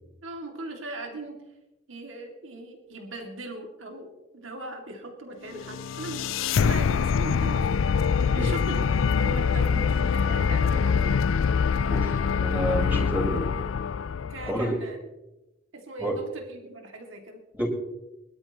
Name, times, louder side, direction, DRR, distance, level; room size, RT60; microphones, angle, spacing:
voice 1, 0.2-1.4 1.9-7.8 8.1-11.1 14.3-15.0 15.7-17.4, right 2 dB, 80° right, 2 dB, 2.4 m, -39 dB
sound 1, 5.5-14.7, left 6 dB, 80° left, 0.4 m, -24 dB
voice 2, 11.9-13.4 14.4-14.8 16.0-16.2 17.5-17.7, equal, 10° right, -6 dB, 4.4 m, -29 dB
23.0 x 12.5 x 3.0 m, 0.97 s
head